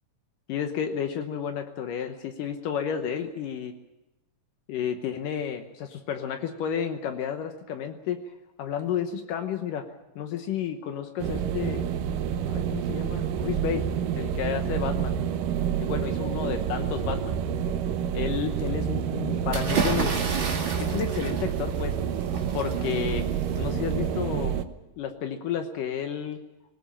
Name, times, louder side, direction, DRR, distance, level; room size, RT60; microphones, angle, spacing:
voice 1, 0.5-3.7 4.7-8.2 8.6-9.9 10.2-11.9 12.5-13.9 14.1-15.1 15.8-17.3 18.1-20.2 20.8-22.0 22.5-23.3 23.6-24.6 25.0-26.4, left 8 dB, 75° left, 6 dB, 2.6 m, -31 dB
sound 1, 11.2-24.7, right 8 dB, 75° right, 2.5 m, -28 dB
sound 2, 19.5-24.3, right 4 dB, 40° right, 3.0 m, -32 dB
19.0 x 19.0 x 8.7 m, 0.95 s
omnidirectional pair, 3.9 m